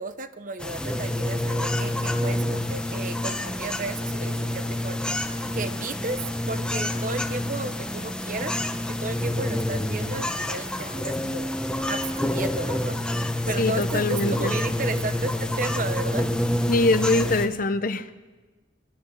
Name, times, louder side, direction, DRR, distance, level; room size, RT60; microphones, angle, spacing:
voice 1, 0.0-6.2 6.5-8.5 8.9-11.5 11.9-13.0 13.5-16.3, right 3 dB, 45° right, 11 dB, 0.9 m, -33 dB
sound 1, 0.6-17.5, left 1 dB, 5° left, 0.9 m, -28 dB
voice 2, 13.6-14.5 16.7-18.0, left 2 dB, 45° left, 11 dB, 1.0 m, -23 dB
22.5 x 21.0 x 5.7 m, 1.3 s
head